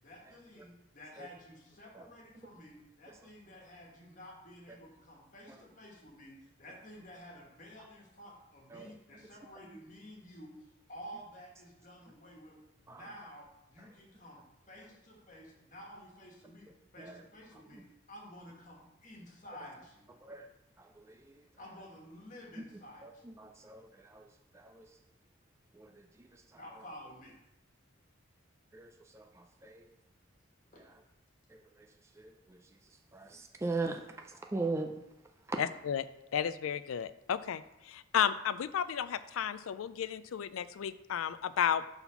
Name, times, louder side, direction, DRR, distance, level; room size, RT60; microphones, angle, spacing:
voice 1, 0.0-20.1 21.6-23.3 26.5-27.4 30.7-30.8, equal, 40° left, -2 dB, 1.6 m, -52 dB
voice 2, 20.2-20.5 20.8-21.4 22.6-22.7 23.0-24.9 25.7-26.6 28.7-29.8 31.5-31.9 32.2-32.6 33.1-34.9 35.5-35.6, right 3 dB, 15° right, 3 dB, 0.4 m, -40 dB
voice 3, 35.6-36.0 36.3-37.6 37.9-41.8, left 8 dB, 85° left, 14 dB, 0.4 m, -33 dB
5.8 x 4.1 x 5.7 m, 0.87 s
head